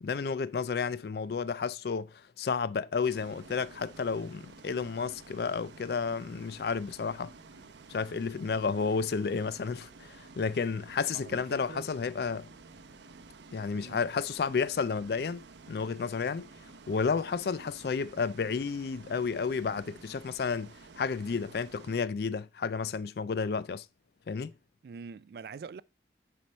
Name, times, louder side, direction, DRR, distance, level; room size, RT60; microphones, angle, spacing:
voice 1, 0.0-7.3 7.9-12.5 13.5-16.5 16.9-23.9 24.3-24.5, left 5 dB, 60° left, 0.4 m, -32 dB
Bus, 3.0-22.0, right 3 dB, 85° right, 0.7 m, -52 dB
voice 2, 11.1-11.9 13.7-14.0 24.8-25.8, right 5 dB, 60° right, 0.3 m, -45 dB
7.4 x 4.6 x 5.4 m
head